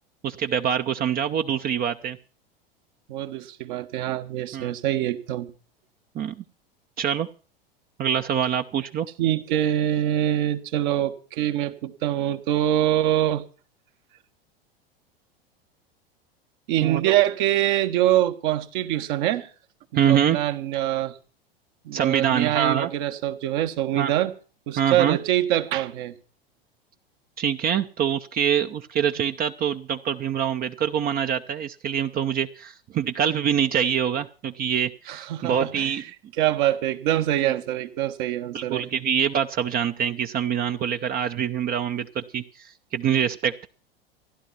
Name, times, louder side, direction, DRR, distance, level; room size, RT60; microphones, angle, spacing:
voice 1, 0.2-2.2 4.5-4.7 6.1-6.3 7.0-7.3 8.0-9.1 16.8-17.1 19.9-20.4 21.9-22.9 24.0-24.1 24.8-25.2 27.4-36.0 38.5-43.7, right 8 dB, 30° right, 0.8 m, -25 dB
voice 2, 3.1-5.5 9.2-13.4 16.7-19.5 20.0-21.2 21.8-24.3 24.7-26.1 35.1-35.9 36.4-38.8, right 12 dB, 55° right, 1.5 m, -24 dB
15.5 x 11.0 x 5.7 m
figure-of-eight pair, 90°, 30 cm